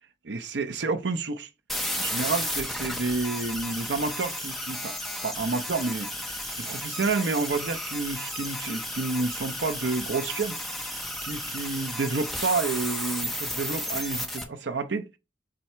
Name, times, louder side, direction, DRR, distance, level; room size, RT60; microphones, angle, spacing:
voice 1, 0.2-1.5 2.0-5.0 5.2-6.1 6.6-10.6 11.2-15.2, right 3 dB, 70° right, 0.7 m, -29 dB
sound 1, 1.7-14.4, left 1 dB, ahead, 0.9 m, -33 dB
7.5 x 2.8 x 4.4 m
head